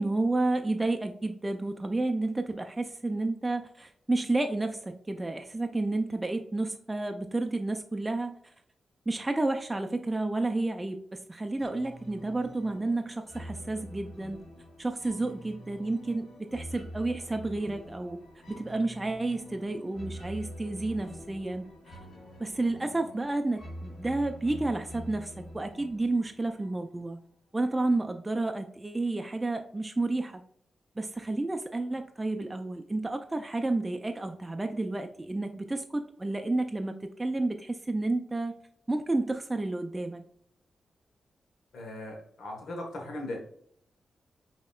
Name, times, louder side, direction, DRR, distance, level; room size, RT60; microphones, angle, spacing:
voice 1, 0.0-8.4 9.1-14.4 14.8-18.2 18.5-21.7 22.4-27.2 27.5-30.4 31.0-38.5 38.9-40.2, right 2 dB, 20° right, 5 dB, 0.4 m, -31 dB
sound 1, 11.6-27.1, equal, 65° left, 1.6 m, -45 dB
voice 2, 41.7-43.4, left 1 dB, 85° left, 1 dB, 1.2 m, -38 dB
5.2 x 2.9 x 2.4 m, 0.66 s
cardioid pair, 55°, 0 cm